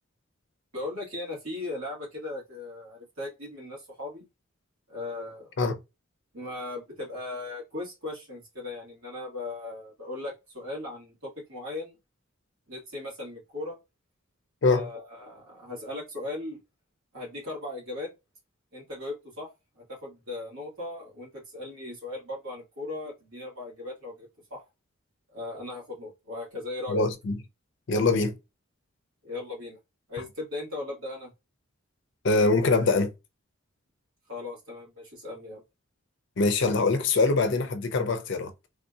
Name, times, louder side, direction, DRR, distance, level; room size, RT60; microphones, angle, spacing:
voice 1, 0.7-4.2 4.9-5.5 6.3-12.0 12.7-13.8 14.7-16.6 17.1-18.1 18.7-19.5 19.7-24.6 25.3-27.1 29.2-29.8 30.1-31.3 34.3-35.6, left 2 dB, 80° right, 1.9 m, -38 dB
voice 2, 26.9-27.4 27.9-28.4 32.2-33.1 36.4-38.5, left 3 dB, 60° left, 0.5 m, -23 dB
3.4 x 2.7 x 2.3 m
head